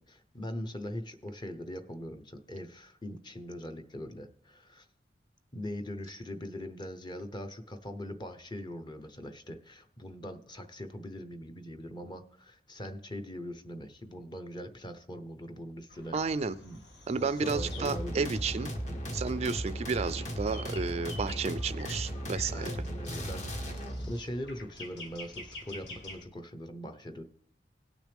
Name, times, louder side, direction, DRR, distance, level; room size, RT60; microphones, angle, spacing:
voice 1, 0.0-4.9 5.5-16.2 16.6-16.8 17.2-18.4 18.9-19.2 22.5-27.2, equal, 25° left, 7 dB, 0.8 m, -41 dB
sound 1, 15.9-26.2, left 2 dB, 75° left, 2.0 m, -49 dB
voice 2, 16.1-16.6 17.1-18.7 19.1-22.7, right 4 dB, 35° right, 14 dB, 0.4 m, -32 dB
sound 2, 17.5-24.1, equal, 40° left, 1.3 m, -36 dB
18.5 x 6.2 x 3.4 m, 0.63 s
head